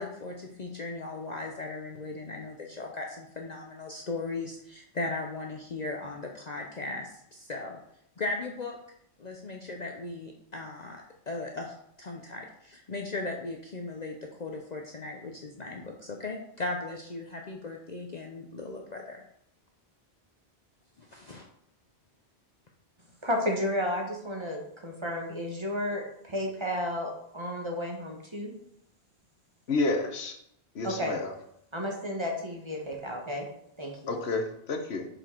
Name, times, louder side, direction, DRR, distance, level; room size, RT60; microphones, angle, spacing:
voice 1, 0.0-7.8 8.2-8.8 9.2-19.2 21.0-21.5, left 3 dB, 45° left, 1 dB, 0.8 m, -37 dB
voice 2, 23.2-28.5 30.8-31.1 31.7-33.4 33.8-33.9, left 1 dB, 25° right, 1 dB, 1.2 m, -32 dB
voice 3, 29.7-30.4 30.7-31.3 34.1-35.1, left 3 dB, 70° left, 4 dB, 1.2 m, -30 dB
6.2 x 5.0 x 4.5 m, 0.73 s
omnidirectional pair, 1.1 m